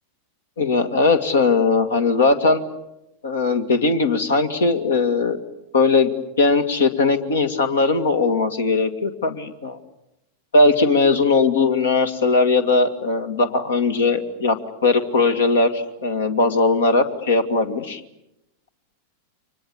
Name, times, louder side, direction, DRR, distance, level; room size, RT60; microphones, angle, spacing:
voice 1, 0.6-2.6 3.2-5.4 5.7-6.1 6.4-9.8 10.5-18.0, left 3 dB, 65° left, 8 dB, 2.1 m, -19 dB
30.0 x 25.0 x 7.2 m, 0.89 s
figure-of-eight pair, 90°, 0 cm